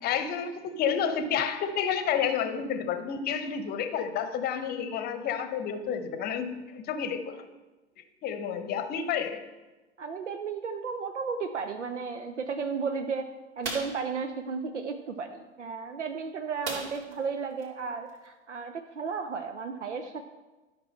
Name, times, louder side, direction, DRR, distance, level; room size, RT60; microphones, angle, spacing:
voice 1, 0.0-7.4 8.2-9.4, left 7 dB, 25° left, 9 dB, 0.9 m, -30 dB
voice 2, 10.0-20.2, right 5 dB, 80° right, 6 dB, 0.7 m, -34 dB
sound 1, 13.6-14.0 16.6-17.2 17.6-17.7 18.1-18.3, right 3 dB, 35° right, 2.3 m, -35 dB
12.0 x 5.9 x 4.4 m, 1.2 s
figure-of-eight pair, 95°, 35 cm